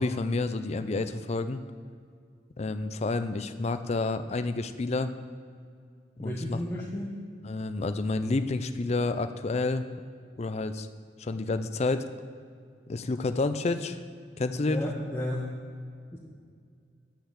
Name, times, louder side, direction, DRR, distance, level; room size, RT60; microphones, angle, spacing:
voice 1, 0.0-1.6 2.6-5.1 6.2-6.6 7.4-9.9 10.4-10.9 11.2-12.1 12.9-14.0 14.4-14.8, left 3 dB, 35° left, 10 dB, 0.4 m, -29 dB
voice 2, 6.2-7.1 14.7-15.5 16.1-16.2, left 1 dB, 15° left, -5 dB, 0.9 m, -33 dB
8.5 x 5.9 x 7.4 m, 2.2 s
head